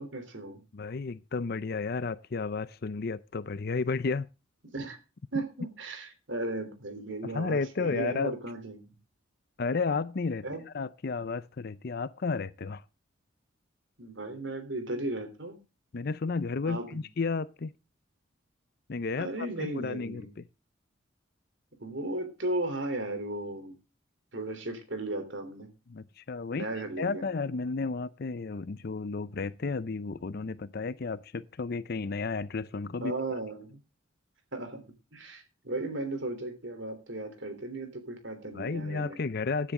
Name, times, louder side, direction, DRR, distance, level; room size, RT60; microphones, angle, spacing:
voice 1, 0.0-0.6 4.7-5.0 5.3-8.9 10.4-10.6 14.0-15.6 16.7-17.0 19.1-20.3 21.8-23.7 24.3-25.7 26.5-27.4 33.0-33.8 34.5-34.8 35.1-39.2, right 2 dB, 65° right, 3.5 m, -36 dB
voice 2, 0.7-4.3 7.2-8.3 9.6-10.5 10.7-12.8 15.9-17.7 18.9-19.3 19.6-20.3 25.9-26.7 27.0-33.1 38.5-39.7, left 4 dB, 50° left, 0.5 m, -32 dB
15.5 x 10.0 x 3.7 m
head